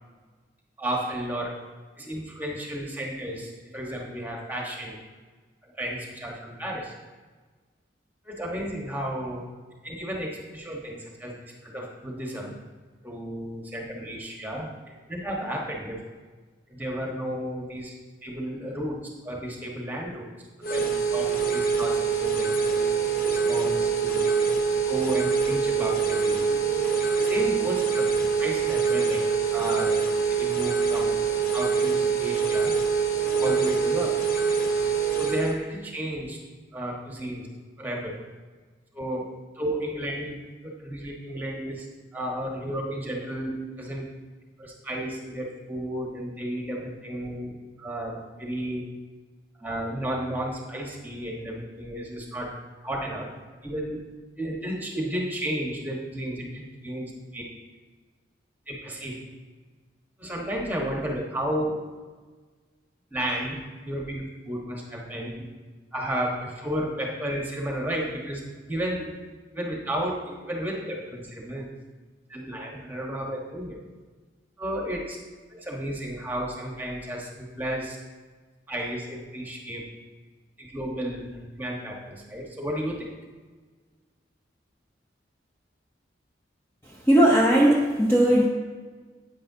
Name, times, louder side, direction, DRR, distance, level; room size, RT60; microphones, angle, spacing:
voice 1, 0.8-1.6 2.0-5.0 5.6-6.9 8.2-9.5 9.8-12.5 13.0-14.7 15.1-16.0 16.7-17.9 18.2-20.3 20.7-22.9 23.2-24.2 24.8-26.4 27.1-28.1 28.4-30.1 30.4-31.2 31.5-32.7 33.4-34.2 35.2-36.4 36.7-37.5 37.8-38.2 38.9-39.3 39.5-41.9 42.1-44.0 44.6-47.5 47.8-48.9 49.6-52.5 52.8-53.3 53.6-54.0 54.4-57.4 58.7-59.2 60.2-61.8 63.1-65.5 65.9-68.4 68.7-69.1 69.5-71.7 72.3-73.8 74.6-75.2 75.5-78.0 78.7-79.9 80.6-83.1, equal, 10° right, -1 dB, 1.3 m, -32 dB
sound 1, 20.6-35.6, right 6 dB, 50° left, 1.0 m, -24 dB
voice 2, 87.1-88.5, right 1 dB, 15° left, -3 dB, 0.8 m, -18 dB
10.0 x 8.7 x 2.8 m, 1.4 s
head